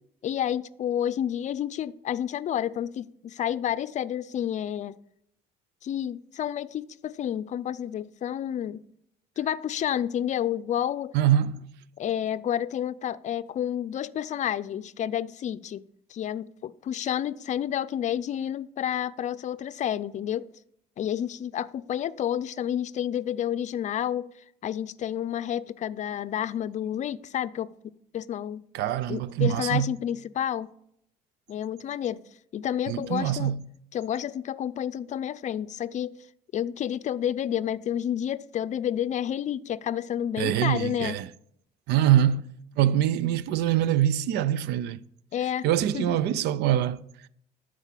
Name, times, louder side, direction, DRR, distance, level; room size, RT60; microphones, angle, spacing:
voice 1, 0.2-5.0 5.8-8.8 9.4-11.1 12.0-15.8 16.1-20.5 21.0-24.3 24.6-27.7 28.1-28.6 29.1-30.7 31.5-32.2 32.5-33.5 33.9-36.2 36.5-41.2 45.3-45.7 45.9-46.2, left 10 dB, 45° left, 0.5 m, -30 dB
voice 2, 11.1-11.6 28.7-29.9 32.9-33.6 40.4-41.3 41.9-42.4 42.8-45.0 45.6-47.3, right 11 dB, 85° right, 0.5 m, -24 dB
11.5 x 4.9 x 7.4 m
cardioid pair, 110°, 17 cm